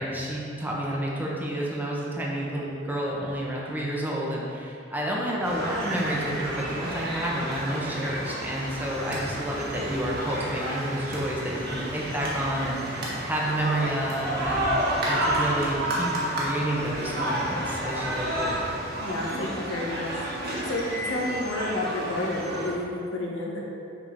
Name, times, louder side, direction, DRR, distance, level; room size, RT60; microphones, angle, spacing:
voice 1, 0.0-18.6, right 1 dB, 10° right, -4 dB, 1.0 m, -30 dB
sound 1, 5.4-22.7, right 1 dB, 55° right, 1.4 m, -30 dB
voice 2, 19.0-20.1 20.7-23.6, left 1 dB, 85° left, -3 dB, 1.2 m, -30 dB
6.5 x 4.4 x 4.6 m, 2.6 s
head